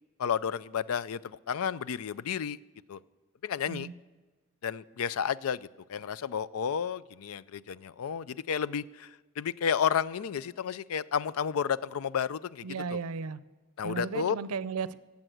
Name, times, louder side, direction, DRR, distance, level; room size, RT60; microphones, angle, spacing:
voice 1, 0.2-2.6 2.9-3.0 3.4-3.9 4.6-12.6 12.9-13.0 13.8-14.4, left 7 dB, 75° left, 0.4 m, -31 dB
voice 2, 12.6-13.4 13.8-14.9, right 5 dB, 85° right, 0.5 m, -35 dB
17.0 x 7.2 x 7.8 m
head